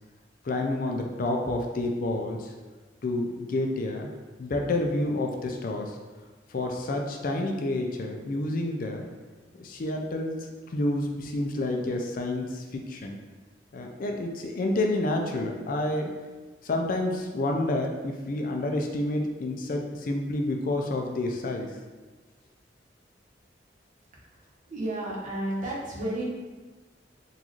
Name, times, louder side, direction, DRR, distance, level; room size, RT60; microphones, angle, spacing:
voice 1, 0.4-2.5 3.0-4.1 4.4-6.0 6.5-9.1 9.5-10.4 10.7-13.2 13.7-16.1 16.6-21.8, left 2 dB, 50° left, 2 dB, 0.4 m, -29 dB
voice 2, 24.7-26.3, right 1 dB, 45° right, -5 dB, 0.9 m, -32 dB
3.9 x 2.4 x 3.0 m, 1.3 s
head